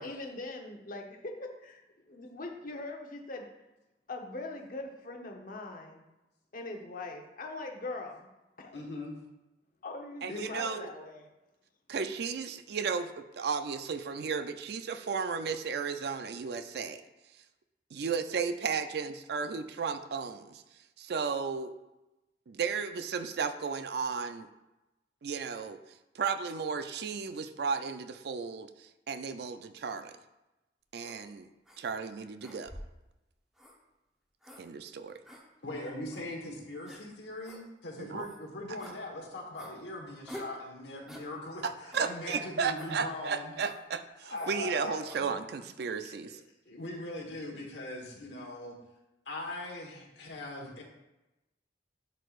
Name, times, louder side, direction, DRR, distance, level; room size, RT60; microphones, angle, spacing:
voice 1, 0.0-3.5 4.1-6.0 6.5-8.3 8.6-8.8 9.8-11.3 12.0-12.1 45.2-45.4 45.8-45.9, left 2 dB, 50° left, 2 dB, 0.9 m, -42 dB
voice 2, 8.7-9.2 10.3-10.5 35.6-43.5 44.2-45.0 46.6-48.8 49.2-50.8, left 2 dB, 80° left, 0 dB, 1.4 m, -40 dB
voice 3, 10.2-10.9 11.9-17.0 17.9-20.6 21.0-21.7 22.5-24.5 25.2-25.8 26.1-30.1 30.9-31.5 31.8-32.7 34.6-35.1 38.0-38.3 41.6-46.4, right 5 dB, 65° right, 10 dB, 0.4 m, -34 dB
sound 1, 31.0-31.2 31.7-31.8 32.4-33.0 33.6-33.8 34.4-34.6 35.3-35.4 36.1-36.2 36.9-37.0 37.4-37.6 38.2-38.4 38.8-39.0 39.6-39.8 40.3-40.6 41.1-41.3 41.9-42.1 42.8-43.0 43.6-43.8 44.3-44.6 45.0-45.2, equal, ahead, 0.9 m, -47 dB
10.5 x 4.5 x 2.5 m, 0.99 s
head